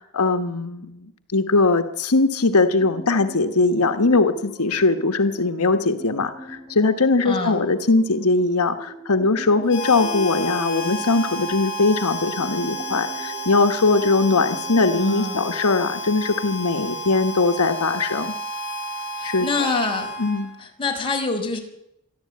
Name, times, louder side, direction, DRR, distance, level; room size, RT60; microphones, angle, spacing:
voice 1, 0.0-18.3 19.2-19.7 20.2-20.5, left 3 dB, 85° left, 7 dB, 1.2 m, -20 dB
sound 1, 2.8-17.2, right 1 dB, 25° right, 5.1 m, -40 dB
voice 2, 7.2-7.6 14.9-15.4 19.2-20.1 20.6-21.6, left 3 dB, 25° left, 1 dB, 4.6 m, -26 dB
Harmonica, 9.7-20.7, right 1 dB, 60° left, 3.9 m, -31 dB
26.0 x 11.5 x 8.6 m, 0.82 s
head